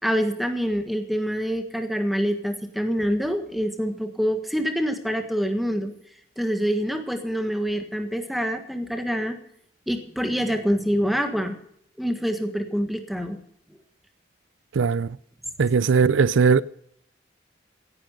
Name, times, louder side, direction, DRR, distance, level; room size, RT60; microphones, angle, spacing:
voice 1, 0.0-5.9 6.4-9.4 9.9-11.5 12.0-13.4, equal, ahead, 1.5 m, -26 dB
voice 2, 14.8-15.1 15.6-16.6, right 5 dB, 90° right, 0.5 m, -19 dB
16.5 x 10.5 x 5.1 m
head